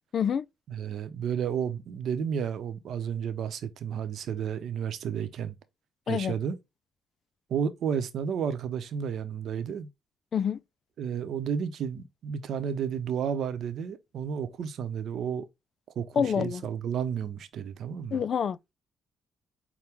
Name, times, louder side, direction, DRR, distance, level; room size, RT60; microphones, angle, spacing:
voice 1, 0.1-0.4 6.1-6.3 10.3-10.6 16.2-16.7 18.1-18.7, left 7 dB, 55° left, 0.4 m, -27 dB
voice 2, 0.7-5.6 6.1-6.6 7.5-9.9 11.0-15.5 16.0-18.2, right 7 dB, 70° right, 0.7 m, -32 dB
5.9 x 2.2 x 3.4 m
cardioid pair, 90°, 0 cm